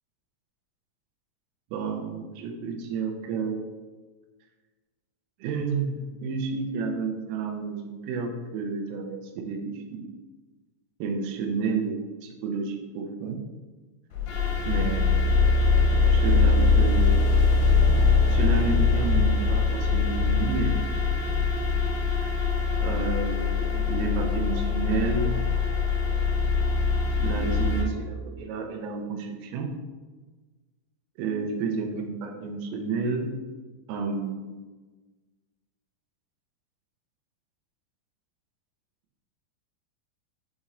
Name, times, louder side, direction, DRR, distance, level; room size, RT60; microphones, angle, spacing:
voice 1, 1.7-3.7 5.4-10.1 11.0-13.4 14.7-15.2 16.1-17.3 18.3-20.8 22.2-22.3 22.8-25.4 27.2-29.8 31.2-33.4 33.9-34.6, right 4 dB, 85° right, 4 dB, 3.3 m, -31 dB
sound 1, 14.1-27.8, left 4 dB, 80° left, 2.3 m, -22 dB
9.4 x 4.1 x 2.5 m, 1.3 s
omnidirectional pair, 5.8 m